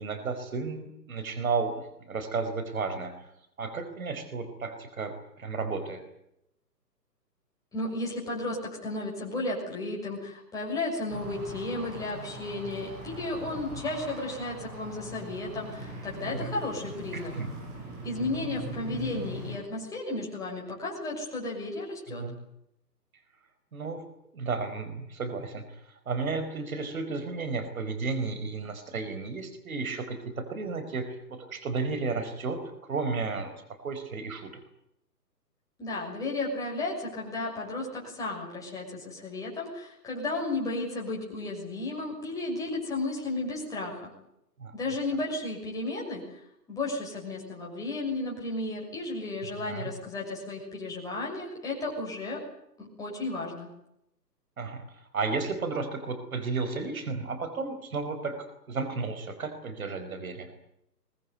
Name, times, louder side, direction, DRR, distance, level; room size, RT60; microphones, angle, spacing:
voice 1, 0.0-1.7 2.1-3.3 3.6-6.0 16.2-16.5 17.1-17.6 22.1-22.4 23.7-24.0 24.3-34.5 44.6-44.7 49.6-49.9 54.6-54.9 55.1-60.5, right 4 dB, 55° right, 9 dB, 4.7 m, -33 dB
voice 2, 7.7-17.3 18.0-22.2 35.8-44.1 44.7-46.2 46.7-52.4 52.8-53.7, left 2 dB, 5° left, -3 dB, 6.5 m, -33 dB
sound 1, 11.1-19.6, equal, 20° right, 8.0 m, -41 dB
23.5 x 19.5 x 9.4 m, 0.78 s
hypercardioid pair, 155°, 50 cm